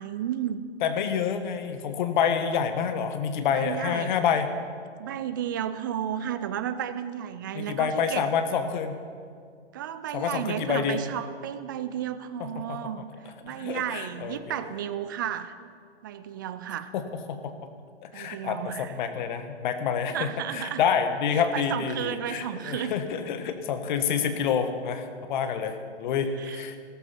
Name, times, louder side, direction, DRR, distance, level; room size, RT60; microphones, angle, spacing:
voice 1, 0.0-0.6 3.5-4.2 5.0-8.3 9.7-13.1 13.4-15.5 16.0-16.9 18.1-18.9 20.1-20.8 21.3-22.9 26.4-26.6, right 10 dB, 20° right, 12 dB, 0.3 m, -33 dB
voice 2, 0.8-4.5 7.5-9.0 10.1-11.0 12.7-12.8 13.4-14.7 16.9-17.0 17.3-17.7 18.0-26.8, left 7 dB, 45° left, 8 dB, 1.4 m, -28 dB
15.0 x 13.5 x 5.9 m, 2.2 s
hypercardioid pair, 135°, 34 cm